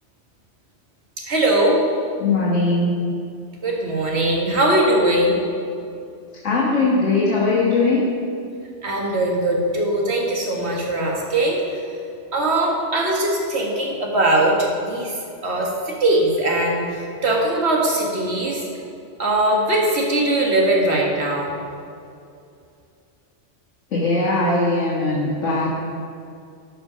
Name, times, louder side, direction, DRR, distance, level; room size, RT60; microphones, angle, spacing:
voice 1, 1.2-1.8 3.6-5.4 8.8-11.8 12.3-15.2 15.4-18.6 19.2-21.5, right 1 dB, 60° right, -2 dB, 1.9 m, -20 dB
voice 2, 2.2-2.9 6.4-8.0 23.9-25.7, left 3 dB, 75° left, -7 dB, 1.9 m, -20 dB
12.5 x 5.4 x 5.1 m, 2.5 s
omnidirectional pair, 1.3 m